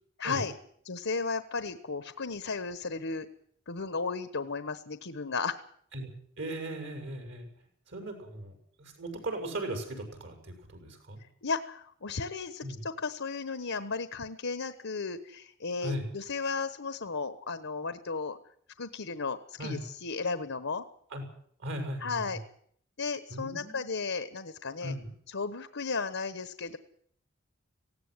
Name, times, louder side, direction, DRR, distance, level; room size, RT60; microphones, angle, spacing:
voice 1, 0.2-0.6 0.8-3.3 3.7-5.6 11.4-18.4 18.8-20.8 22.0-22.4 23.0-24.9 25.3-26.8, left 4 dB, 65° left, 11 dB, 1.2 m, -34 dB
voice 2, 6.4-7.5 7.9-11.2 12.6-12.8 15.8-16.0 19.6-19.8 21.1-21.2 21.6-22.3 23.3-23.9 24.8-25.1, right 1 dB, 60° right, 4 dB, 6.6 m, -38 dB
18.0 x 16.5 x 9.7 m, 0.64 s
head